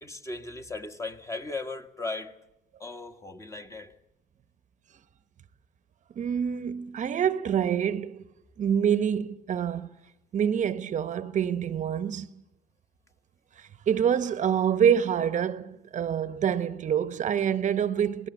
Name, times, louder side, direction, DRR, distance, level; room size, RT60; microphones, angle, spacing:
voice 1, 0.0-2.4 2.8-3.9, left 3 dB, 15° left, 1.4 m, -37 dB
voice 2, 6.2-8.2 8.6-9.9 10.3-12.3 13.6-18.3, right 8 dB, 45° right, 1.0 m, -26 dB
25.0 x 18.5 x 8.2 m
cardioid pair, 110°, 17 cm